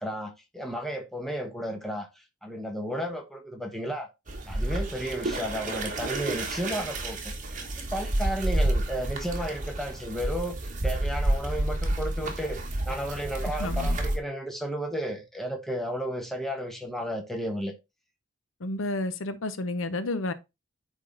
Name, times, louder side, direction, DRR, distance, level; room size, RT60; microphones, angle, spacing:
voice 1, 0.0-4.1 4.5-7.3 7.7-17.7, equal, ahead, 1.0 m, -33 dB
sound 1, 4.3-14.2, right 1 dB, 40° right, 1.3 m, -30 dB
voice 2, 13.6-14.0 18.6-20.3, left 2 dB, 75° left, 0.8 m, -31 dB
9.2 x 3.7 x 3.9 m
head